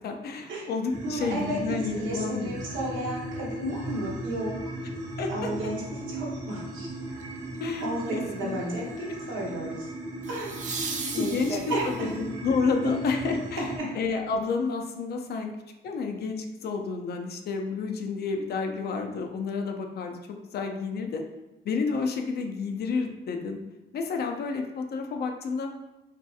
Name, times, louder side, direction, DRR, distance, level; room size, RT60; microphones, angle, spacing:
voice 1, 0.0-2.5 5.2-5.5 7.6-8.9 11.0-13.7 14.0-15.5 15.8-21.2 21.6-23.6 23.9-25.7, left 4 dB, 55° left, 4 dB, 0.4 m, -30 dB
sound 1, 0.9-13.8, right 1 dB, 20° right, 0.8 m, -37 dB
voice 2, 1.0-1.6 2.0-4.7 5.3-6.9 7.8-9.9 10.3-12.1 12.8-13.2 13.7-13.9, right 1 dB, 75° right, -3 dB, 0.9 m, -33 dB
sound 2, 7.2-7.5 10.2-12.1 15.0-15.1, right 4 dB, 40° right, 0.4 m, -36 dB
2.6 x 2.5 x 2.3 m, 1.1 s
cardioid pair, 90°, 20 cm